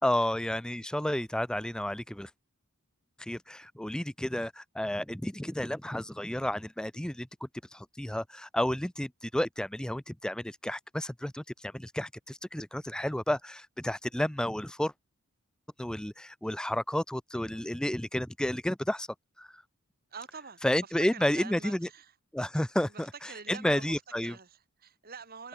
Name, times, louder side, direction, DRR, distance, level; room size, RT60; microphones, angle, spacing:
voice 1, 0.0-2.3 3.2-14.9 15.8-19.1 19.4-19.5 20.6-21.9 22.3-24.3, left 1 dB, 5° left, 0.4 m, -31 dB
voice 2, 20.1-22.1 22.8-25.5, right 5 dB, 45° right, 2.8 m, -47 dB
head